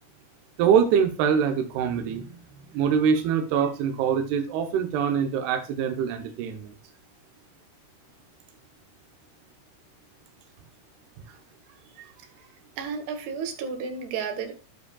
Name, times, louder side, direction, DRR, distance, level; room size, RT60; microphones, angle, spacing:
voice 1, 0.6-2.4 2.7-6.7, right 7 dB, 80° right, 5 dB, 2.3 m, -24 dB
voice 2, 12.8-14.6, right 6 dB, 65° right, 5 dB, 2.9 m, -32 dB
13.5 x 7.2 x 2.3 m, 0.30 s
omnidirectional pair, 5.8 m